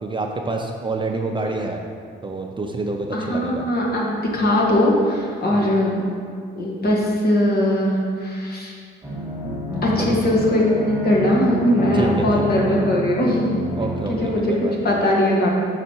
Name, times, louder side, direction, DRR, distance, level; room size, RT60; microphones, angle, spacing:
voice 1, 0.0-1.8 2.2-3.6 5.5-5.7 9.9-10.2 11.9-12.4 13.8-14.8, right 3 dB, 25° right, 2 dB, 0.5 m, -27 dB
voice 2, 3.1-6.0 6.6-8.7 9.8-13.5 14.2-15.5, left 1 dB, 50° left, -3 dB, 1.6 m, -20 dB
sound 1, 9.0-14.4, equal, 5° right, 1.4 m, -28 dB
6.4 x 4.9 x 4.4 m, 2.1 s
cardioid pair, 90°, 20 cm